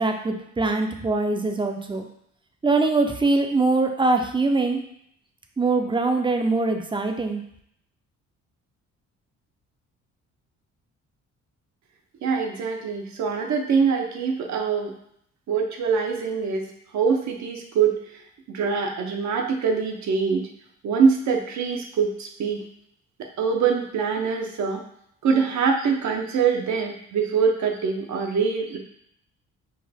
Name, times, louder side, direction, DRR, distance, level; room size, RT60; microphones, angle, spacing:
voice 1, 0.0-2.0 2.6-4.8 5.6-7.4, right 3 dB, 15° right, 4 dB, 0.5 m, -23 dB
voice 2, 12.2-14.9 15.5-16.7 16.9-18.0 18.5-20.5 20.8-22.6 23.4-24.8 25.2-28.8, right 5 dB, 65° right, 2 dB, 0.8 m, -24 dB
4.6 x 2.6 x 3.5 m, 0.71 s
cardioid pair, 90°, 30 cm